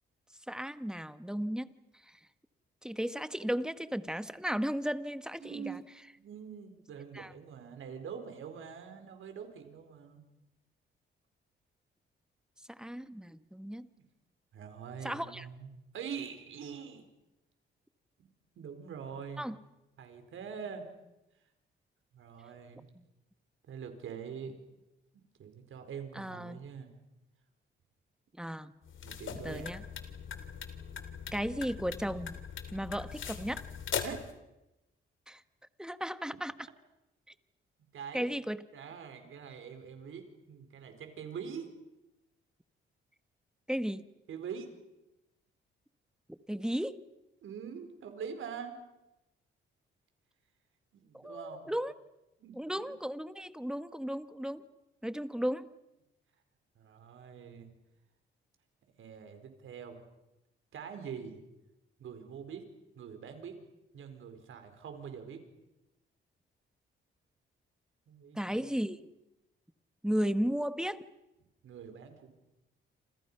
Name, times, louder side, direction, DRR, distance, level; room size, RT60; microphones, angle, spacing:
voice 1, 0.5-1.7 2.1-2.2 2.8-5.8 7.1-7.3 12.7-13.9 15.0-15.5 19.4-19.5 22.9-23.0 26.1-26.6 28.4-28.7 29.4-29.8 31.3-32.4 32.7-33.6 35.3-35.4 35.8-36.7 38.1-38.6 43.7-44.1 46.3-47.0 51.1-51.9 52.5-54.6 55.0-55.7 68.3-69.0 70.0-71.0, equal, 5° right, 12 dB, 1.4 m, -35 dB
voice 2, 5.4-5.8 6.2-10.2 14.5-17.1 18.2-18.3 18.5-19.5 20.0-20.9 22.1-22.9 23.7-24.5 25.1-26.9 29.0-29.7 34.0-34.2 37.9-38.3 38.7-41.7 44.3-44.7 47.4-48.8 50.9-51.7 52.4-52.9 56.7-57.7 59.0-60.0 60.7-61.4 62.0-62.7 62.9-63.6 63.9-65.4 68.1-68.6 71.6-72.3, right 7 dB, 70° right, 7 dB, 4.9 m, -44 dB
sound 1, 28.8-34.3, left 7 dB, 65° left, 3.1 m, -40 dB
28.5 x 28.0 x 5.8 m, 0.94 s
cardioid pair, 85°, 21 cm